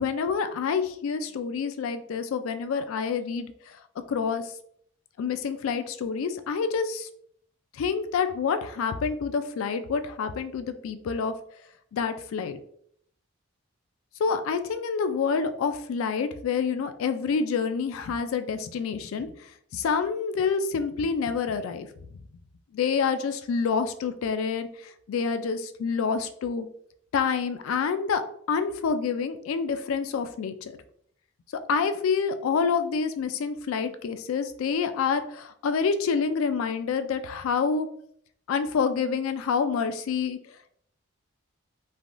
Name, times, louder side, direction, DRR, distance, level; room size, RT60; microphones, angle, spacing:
voice 1, 0.0-3.5 4.1-4.4 5.2-7.1 7.8-11.3 11.9-12.6 14.2-19.3 19.7-21.9 22.7-24.7 25.1-26.7 27.1-28.2 28.5-30.5 31.7-37.9 38.5-40.4, left 5 dB, 75° left, 10 dB, 0.3 m, -27 dB
3.3 x 2.2 x 2.5 m, 0.65 s
head